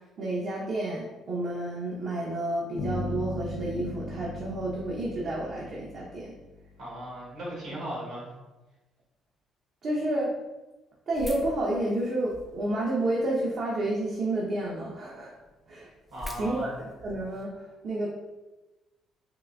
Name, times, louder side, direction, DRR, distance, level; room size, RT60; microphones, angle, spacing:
voice 1, 0.2-6.3 9.8-10.3 11.1-15.3 15.7-15.9 16.4-18.1, right 1 dB, 60° right, -5 dB, 0.6 m, -30 dB
sound 1, 2.8-6.8, left 1 dB, 55° left, 0.5 m, -37 dB
voice 2, 6.8-8.3 16.1-16.8, equal, 80° right, -6 dB, 1.4 m, -37 dB
sound 2, 11.1-12.7 13.2-13.9 14.3-14.4 14.6-14.7 15.1-15.2 15.4-17.4, left 1 dB, ahead, 0.4 m, -43 dB
3.7 x 2.4 x 2.2 m, 1.1 s
cardioid pair, 90°, 0 cm